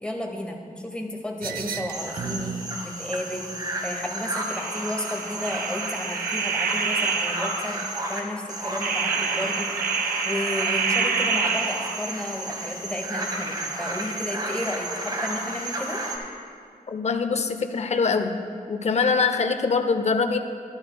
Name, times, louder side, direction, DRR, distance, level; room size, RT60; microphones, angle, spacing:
voice 1, 0.0-2.5 2.8-3.5 3.8-7.8 8.1-9.7 10.2-16.0, left 1 dB, 5° left, 1 dB, 1.0 m, -32 dB
sound 1, 1.4-2.7 4.5-7.8 8.8-12.2, right 5 dB, 85° right, 0.5 m, -28 dB
sound 2, 1.9-8.2 8.5-16.2, right 2 dB, 25° right, 1.2 m, -32 dB
voice 2, 16.9-18.4 18.7-20.4, left 4 dB, 50° left, 8 dB, 0.6 m, -23 dB
12.0 x 12.0 x 2.2 m, 2.2 s
wide cardioid pair, 115°, 15 cm